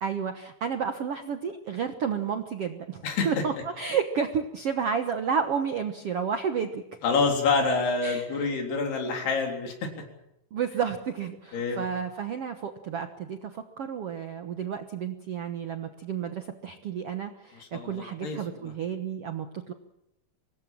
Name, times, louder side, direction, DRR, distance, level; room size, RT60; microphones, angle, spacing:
voice 1, 0.0-6.8 8.0-8.5 10.5-19.7, right 7 dB, 75° right, 7 dB, 1.4 m, -31 dB
voice 2, 7.0-9.9 11.5-11.9 17.5-18.7, left 4 dB, 90° left, 3 dB, 5.7 m, -27 dB
25.0 x 20.0 x 7.4 m, 0.86 s
omnidirectional pair, 4.5 m